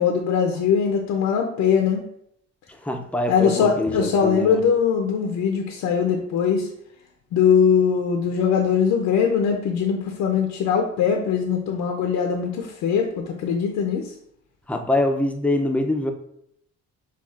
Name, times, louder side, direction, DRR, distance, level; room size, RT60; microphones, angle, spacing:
voice 1, 0.0-2.0 3.3-6.7 7.3-14.1, left 7 dB, 85° left, 2 dB, 0.5 m, -21 dB
voice 2, 2.8-4.6 14.7-16.1, left 1 dB, 5° left, 4 dB, 0.4 m, -24 dB
5.5 x 2.3 x 2.4 m, 0.71 s
cardioid pair, 90°, 30 cm